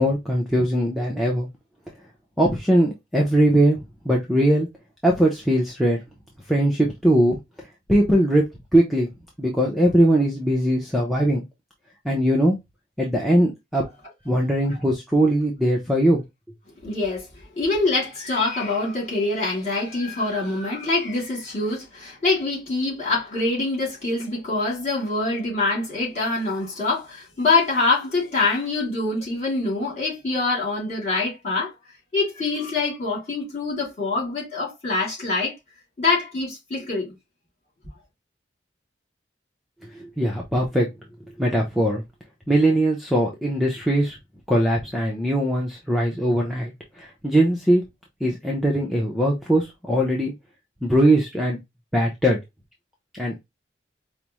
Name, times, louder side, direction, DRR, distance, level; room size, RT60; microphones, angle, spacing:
voice 1, 0.0-1.5 2.4-3.8 4.1-4.7 5.0-6.0 6.5-7.4 7.9-8.4 8.7-9.1 9.4-11.4 12.0-12.6 13.0-13.9 14.3-16.2 40.0-40.9 41.4-42.0 42.5-44.2 44.5-46.7 47.0-47.8 48.2-50.3 50.8-51.6 51.9-52.4 53.1-53.4, right 1 dB, ahead, 0.6 m, -20 dB
voice 2, 16.8-31.7 32.1-35.5 36.0-37.1, left 3 dB, 35° left, 2.5 m, -25 dB
4.9 x 2.0 x 2.9 m
head